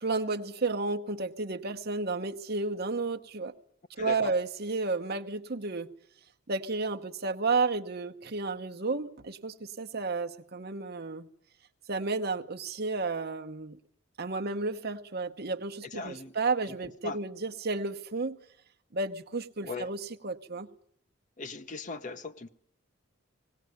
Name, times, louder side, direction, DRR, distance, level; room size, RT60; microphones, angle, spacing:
voice 1, 0.0-3.5 4.0-5.9 6.5-11.3 11.9-13.8 14.2-18.4 18.9-20.7, right 3 dB, 50° right, 0.9 m, -32 dB
voice 2, 4.0-4.3 15.9-16.3 17.0-17.2 19.7-19.9 21.4-22.5, left 3 dB, 35° left, 0.8 m, -38 dB
18.5 x 18.0 x 9.4 m
head